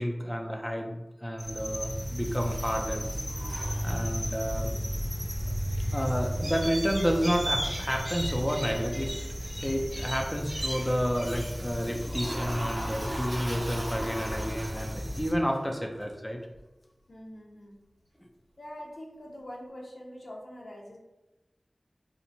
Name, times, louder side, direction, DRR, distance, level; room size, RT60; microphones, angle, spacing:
voice 1, 0.0-3.1 3.8-4.7 5.9-9.1 9.6-16.4, equal, 5° left, 1 dB, 0.5 m, -30 dB
sound 1, 1.4-15.3, equal, 30° right, 1.4 m, -34 dB
Toilet flush, 2.2-4.4 11.2-15.3, equal, 70° right, 1.3 m, -40 dB
voice 2, 4.4-4.9 15.6-15.9 17.1-17.8 18.6-21.0, left 1 dB, 70° left, -1 dB, 0.7 m, -45 dB
sound 2, 10.6-13.9 14.2-15.0 15.7-16.1, right 1 dB, 55° right, 0.9 m, -54 dB
4.3 x 2.1 x 2.7 m, 1.0 s
wide cardioid pair, 45°, 0 cm